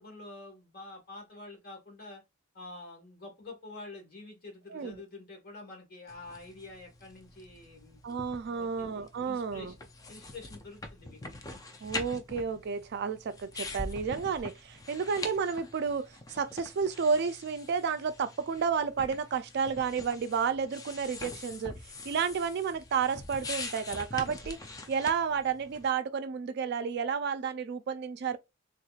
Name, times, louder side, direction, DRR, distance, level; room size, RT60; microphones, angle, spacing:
voice 1, 0.0-2.2 2.5-8.0 8.4-11.2 14.9-15.0, left 2 dB, 50° left, 1.4 m, -48 dB
voice 2, 4.7-5.0 8.0-9.7 11.8-21.8 22.0-28.4, right 6 dB, 55° right, 0.3 m, -31 dB
sound 1, 6.1-25.9, left 2 dB, 20° left, 0.4 m, -44 dB
3.5 x 3.0 x 2.3 m
head